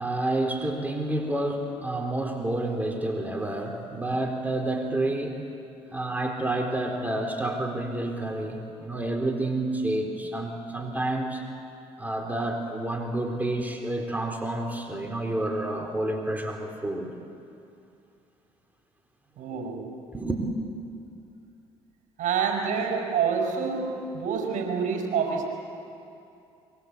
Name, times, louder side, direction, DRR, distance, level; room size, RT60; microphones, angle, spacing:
voice 1, 0.0-5.4 5.9-11.4 12.0-17.1 19.5-19.6 20.1-20.4, right 1 dB, 10° right, 2 dB, 4.2 m, -29 dB
voice 2, 19.4-19.9 22.2-25.5, right 6 dB, 60° right, 1 dB, 5.6 m, -27 dB
26.0 x 23.5 x 8.3 m, 2.6 s
hypercardioid pair, 60°, 15 cm